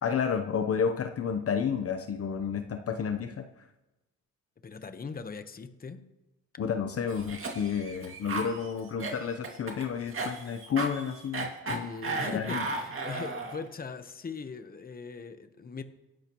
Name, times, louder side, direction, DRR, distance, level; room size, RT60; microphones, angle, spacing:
voice 1, 0.0-3.4 6.6-11.9 12.3-12.6, left 7 dB, 50° left, 6 dB, 0.9 m, -31 dB
voice 2, 4.6-6.0 11.7-15.8, left 5 dB, 30° left, 9 dB, 1.1 m, -40 dB
Cough, 7.1-13.7, right 3 dB, 45° right, 2.4 m, -35 dB
25.5 x 11.5 x 3.1 m, 1.0 s
cardioid pair, 90°, 30 cm